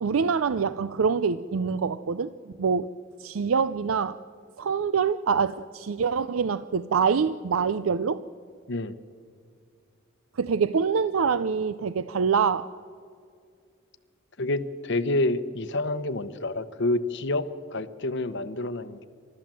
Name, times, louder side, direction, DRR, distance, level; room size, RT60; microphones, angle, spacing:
voice 1, 0.0-2.3 2.6-2.9 3.2-4.2 4.6-8.2 10.4-12.7, right 6 dB, 85° right, 14 dB, 0.5 m, -25 dB
voice 2, 14.4-19.1, left 2 dB, 60° left, 12 dB, 0.9 m, -28 dB
29.0 x 13.5 x 7.6 m, 2.3 s
head